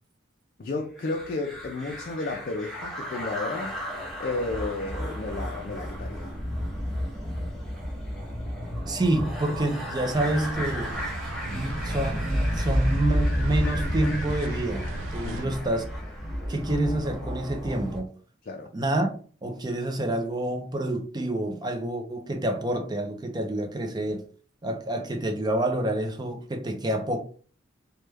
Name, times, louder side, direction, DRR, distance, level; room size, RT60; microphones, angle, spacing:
voice 1, 0.6-3.7 4.2-6.3 15.2-15.6 18.4-18.7, left 3 dB, 45° left, 0.4 m, -32 dB
sound 1, 1.0-18.0, equal, ahead, 0.8 m, -31 dB
voice 2, 8.9-11.0 11.5-15.9 16.5-18.1 18.7-19.1 19.4-24.2 24.6-27.2, right 1 dB, 20° right, 0.4 m, -28 dB
sound 2, 10.2-15.5, right 4 dB, 85° right, 0.3 m, -41 dB
3.1 x 2.2 x 3.3 m
head